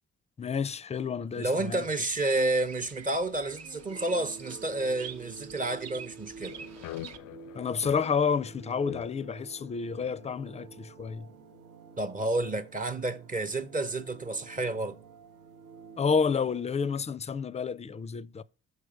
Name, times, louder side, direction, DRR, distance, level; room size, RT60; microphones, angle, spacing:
voice 1, 0.4-1.8 7.5-11.3 16.0-18.4, left 6 dB, 20° left, 0.4 m, -30 dB
voice 2, 1.4-6.5 12.0-15.0, right 2 dB, 25° right, 0.8 m, -30 dB
Bird vocalization bird call bird song, 2.1-7.2, right 7 dB, 60° right, 0.9 m, -47 dB
sound 1, 3.9-16.9, right 6 dB, 85° right, 0.9 m, -50 dB
sound 2, 6.4-11.9, left 13 dB, 90° left, 0.5 m, -45 dB
6.5 x 5.1 x 4.8 m
cardioid pair, 90°, 30 cm